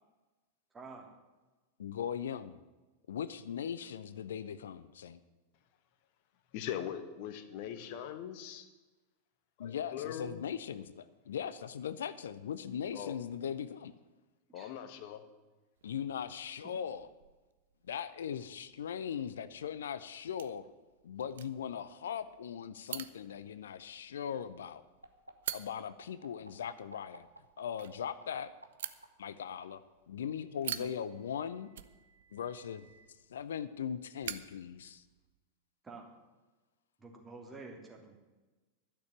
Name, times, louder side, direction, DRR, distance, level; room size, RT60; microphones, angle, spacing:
voice 1, 0.7-1.1 14.5-14.7 30.8-30.9 35.8-36.1 37.0-38.2, right 3 dB, 15° right, 1 dB, 2.8 m, -49 dB
voice 2, 1.8-2.6 3.1-5.2 9.6-13.9 15.8-17.1 17.8-20.7 21.0-24.8 25.5-27.3 27.6-28.5 29.2-31.7 32.3-32.9 33.3-35.0, left 8 dB, 65° left, 15 dB, 0.6 m, -39 dB
voice 3, 6.5-8.7 9.6-10.4 12.9-13.1 14.5-15.2, left 10 dB, 45° left, 9 dB, 1.3 m, -41 dB
sound 1, 15.8-35.4, right 10 dB, 60° right, 0.6 m, -49 dB
sound 2, 25.0-29.6 30.8-33.1, right 1 dB, 85° right, 1.0 m, -56 dB
12.0 x 6.9 x 9.9 m, 1.2 s
figure-of-eight pair, 90°, 0 cm